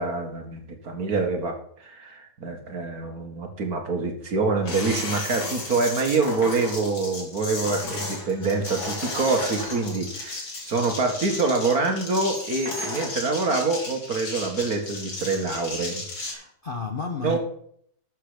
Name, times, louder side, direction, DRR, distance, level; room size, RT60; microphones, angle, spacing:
voice 1, 0.0-16.3 17.2-17.4, right 3 dB, 50° right, 5 dB, 2.1 m, -26 dB
sound 1, 4.6-16.3, left 2 dB, 80° left, 3.6 m, -34 dB
voice 2, 16.1-17.4, left 4 dB, 40° left, 3 dB, 0.8 m, -33 dB
12.5 x 6.9 x 5.1 m, 0.66 s
omnidirectional pair, 2.1 m